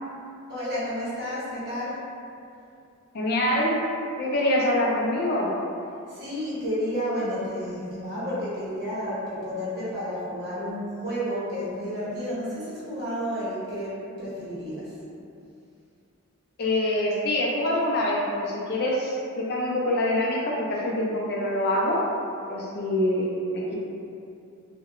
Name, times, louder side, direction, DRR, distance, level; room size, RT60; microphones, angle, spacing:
voice 1, 0.5-2.0 6.1-14.9, equal, 50° right, -10 dB, 0.9 m, -31 dB
voice 2, 3.1-3.8 4.2-5.5 16.6-22.0 22.5-23.8, left 1 dB, 50° left, -3 dB, 0.4 m, -25 dB
2.7 x 2.1 x 2.4 m, 2.6 s
head